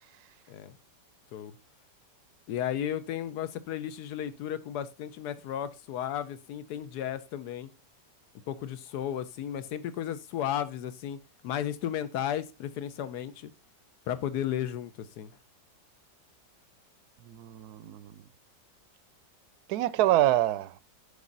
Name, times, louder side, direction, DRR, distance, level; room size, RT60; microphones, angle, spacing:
voice 1, 2.5-7.7 8.5-11.2 11.4-13.5 14.1-15.3, left 10 dB, 70° left, 1.2 m, -34 dB
voice 2, 17.2-18.1 19.7-20.8, right 14 dB, 70° right, 1.0 m, -26 dB
9.9 x 5.5 x 3.9 m
omnidirectional pair, 1.9 m